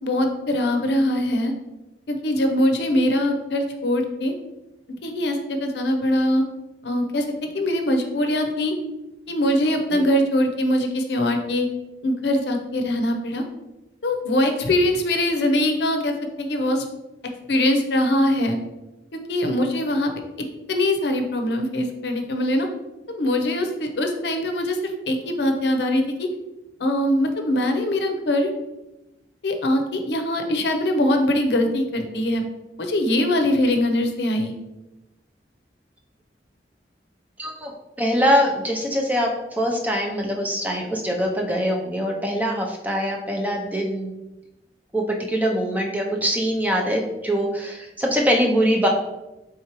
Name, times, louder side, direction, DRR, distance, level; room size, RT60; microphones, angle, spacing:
voice 1, 0.0-1.5 2.1-4.3 5.0-6.4 6.8-7.3 7.5-8.7 9.3-11.7 12.0-13.4 14.0-16.9 17.5-18.6 19.1-20.1 20.7-22.7 23.1-26.3 26.8-28.5 29.4-32.4 32.8-34.6, left 1 dB, 75° left, 5 dB, 0.6 m, -22 dB
voice 2, 37.4-37.7 38.0-44.1 44.9-48.9, equal, 10° right, 0 dB, 0.5 m, -23 dB
4.4 x 3.6 x 2.9 m, 0.99 s
head